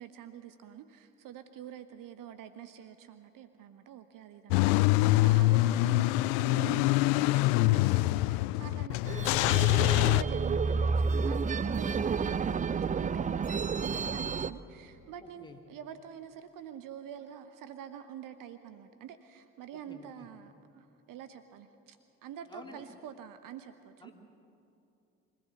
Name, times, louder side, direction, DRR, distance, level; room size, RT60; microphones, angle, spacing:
voice 1, 0.0-9.3 9.8-22.0 22.2-24.1, right 9 dB, 50° right, 10 dB, 1.0 m, -46 dB
Car / Engine starting / Idling, 4.5-10.2, left 19 dB, 60° left, 0.5 m, -25 dB
sound 1, 9.1-14.5, right 5 dB, 20° right, 0.6 m, -30 dB
voice 2, 22.4-22.8 24.0-24.1, left 2 dB, 10° left, 2 dB, 2.7 m, -50 dB
25.0 x 15.5 x 7.2 m, 2.7 s
figure-of-eight pair, 55°, 40 cm